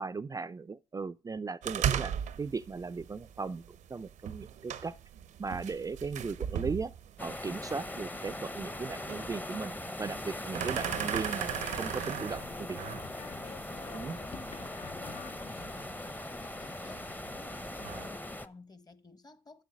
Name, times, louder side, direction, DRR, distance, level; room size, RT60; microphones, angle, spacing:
voice 1, 0.0-2.1 2.4-3.6 3.9-4.9 5.4-6.9 7.2-12.8 13.9-14.2, right 4 dB, 25° right, 0.4 m, -37 dB
sound 1, 1.6-18.1, right 9 dB, 75° right, 0.6 m, -39 dB
sound 2, 7.2-18.5, left 1 dB, 15° left, 0.7 m, -41 dB
sound 3, 10.5-15.9, left 7 dB, 50° left, 0.5 m, -50 dB
voice 2, 14.0-19.6, left 3 dB, 30° left, 1.1 m, -53 dB
7.5 x 6.6 x 6.1 m
hypercardioid pair, 45°, 13 cm